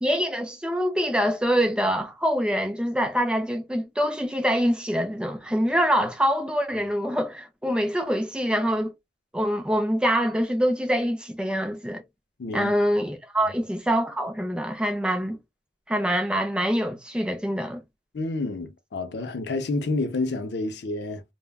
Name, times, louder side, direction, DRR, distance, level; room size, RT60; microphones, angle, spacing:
voice 1, 0.0-8.9 9.3-12.0 12.5-15.4 15.9-17.8, equal, 5° right, 0.4 m, -25 dB
voice 2, 12.4-12.7 13.4-13.5 18.1-21.2, left 2 dB, 70° left, 0.6 m, -29 dB
3.4 x 2.1 x 2.3 m
head